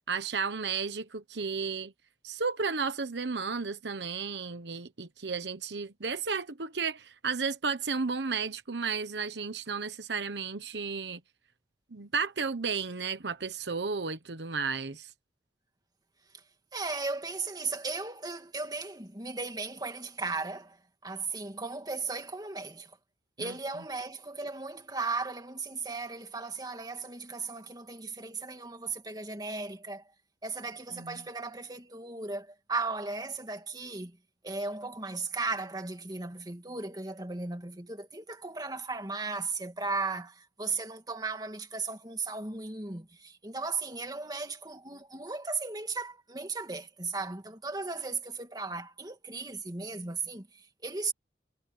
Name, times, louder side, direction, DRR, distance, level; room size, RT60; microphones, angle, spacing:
voice 1, 0.1-1.9 2.2-11.2 11.9-15.1 23.4-23.5 30.9-31.2, right 5 dB, 80° right, 1.1 m, -33 dB
voice 2, 16.7-20.8 21.0-22.9 23.4-30.0 30.4-34.2 34.4-51.1, right 3 dB, 20° right, 2.6 m, -36 dB
head